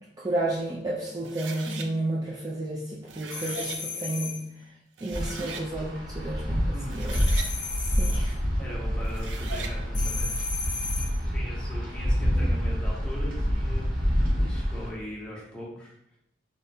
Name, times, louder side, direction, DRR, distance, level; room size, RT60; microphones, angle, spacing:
voice 1, 0.2-4.4 5.0-7.2 8.0-8.4, right 1 dB, 20° right, -5 dB, 0.3 m, -31 dB
sound 1, 1.2-1.9 2.9-3.8 4.6-4.7 5.0-5.7 6.7-7.5 9.0-9.8, right 5 dB, 90° right, 0.4 m, -39 dB
sound 2, 3.3-4.5 7.1-8.3 9.9-11.2, left 4 dB, 70° left, 0.7 m, -34 dB
Wind, 5.1-14.9, equal, 50° right, 1.2 m, -27 dB
voice 2, 8.6-10.3 11.3-16.2, equal, 5° left, -5 dB, 0.8 m, -40 dB
3.2 x 2.8 x 2.6 m, 0.76 s
head